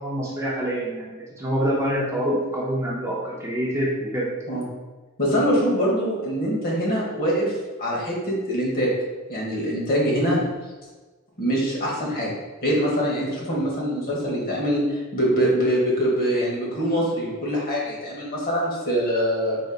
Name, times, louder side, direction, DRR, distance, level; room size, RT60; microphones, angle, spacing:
voice 1, 0.0-4.3, equal, 15° right, -5 dB, 0.6 m, -26 dB
voice 2, 5.2-8.9 9.3-10.4 11.4-12.3 12.6-19.6, equal, 45° left, -3 dB, 1.2 m, -23 dB
4.1 x 2.5 x 3.8 m, 1.3 s
head